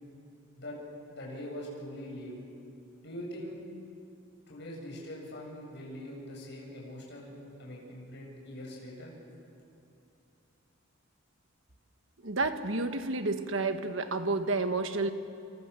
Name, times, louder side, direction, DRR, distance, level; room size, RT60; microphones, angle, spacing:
voice 1, 1.1-2.4 3.0-3.6 4.5-7.3 7.6-9.1, equal, 60° left, -2 dB, 7.6 m, -42 dB
voice 2, 12.2-15.1, right 3 dB, 65° right, 8 dB, 1.5 m, -30 dB
28.5 x 28.5 x 7.0 m, 2.7 s
head